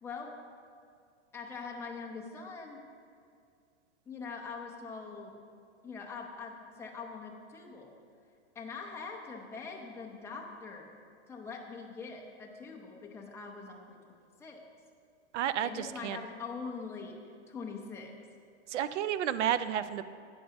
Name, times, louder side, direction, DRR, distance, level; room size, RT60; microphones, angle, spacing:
voice 1, 0.0-0.3 1.3-2.8 4.1-5.4 5.8-7.9 8.5-10.9 11.3-14.6 15.6-17.2 17.5-18.1, left 4 dB, 10° left, -1 dB, 0.6 m, -43 dB
voice 2, 15.3-16.2 18.7-20.0, right 10 dB, 90° right, 14 dB, 0.5 m, -31 dB
9.2 x 5.4 x 5.8 m, 2.3 s
supercardioid pair, 150°, 34 cm